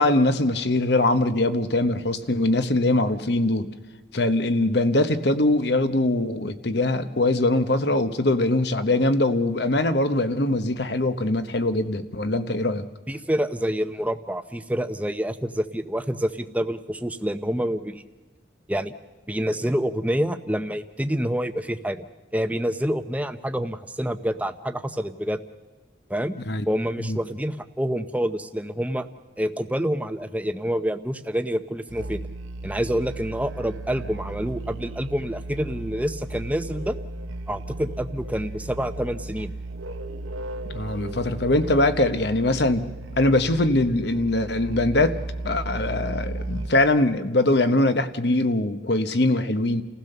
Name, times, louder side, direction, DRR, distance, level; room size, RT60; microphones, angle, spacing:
voice 1, 0.0-3.7 4.1-12.8 26.4-26.6 27.0-27.2 40.7-42.9 43.2-45.2 45.4-49.8, left 2 dB, 55° left, 11 dB, 1.0 m, -22 dB
voice 2, 13.1-18.0 18.7-18.9 19.3-22.1 22.3-25.4 26.1-26.3 26.7-29.1 29.4-32.2 32.6-37.0 37.5-39.5, equal, 5° right, 9 dB, 0.7 m, -27 dB
Musical instrument, 31.9-46.9, right 2 dB, 90° right, 0.9 m, -35 dB
29.0 x 15.5 x 6.7 m, 1.2 s
head